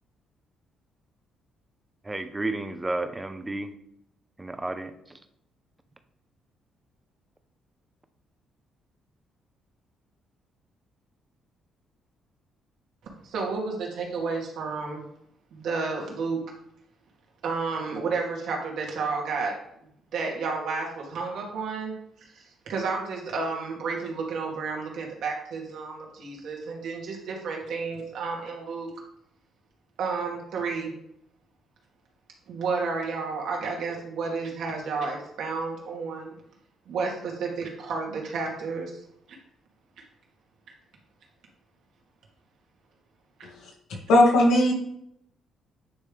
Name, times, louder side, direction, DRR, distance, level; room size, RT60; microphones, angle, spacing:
voice 1, 2.0-3.7 4.4-5.2, right 2 dB, 15° right, 9 dB, 0.6 m, -32 dB
voice 2, 13.2-15.0 15.5-16.4 17.4-19.6 20.1-21.9 22.2-28.9 30.0-30.9 32.5-36.3 36.9-39.0, right 4 dB, 70° right, -1 dB, 2.1 m, -31 dB
voice 3, 44.1-44.7, left 1 dB, 90° left, -2 dB, 2.0 m, -17 dB
9.4 x 3.3 x 3.5 m, 0.75 s
cardioid pair, 120°, 0 cm